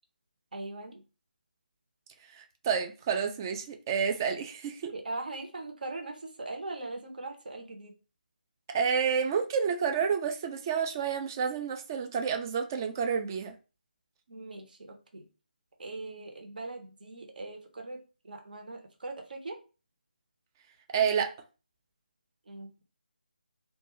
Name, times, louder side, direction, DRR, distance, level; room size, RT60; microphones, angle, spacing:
voice 1, 0.5-1.0 4.9-7.9 14.3-15.3 15.8-19.6 22.5-22.8, right 2 dB, 60° right, 0.9 m, -40 dB
voice 2, 2.3-4.9 8.7-13.5 20.9-21.3, right 6 dB, 20° right, 0.4 m, -29 dB
2.5 x 2.3 x 3.0 m
figure-of-eight pair, 155°, 5 cm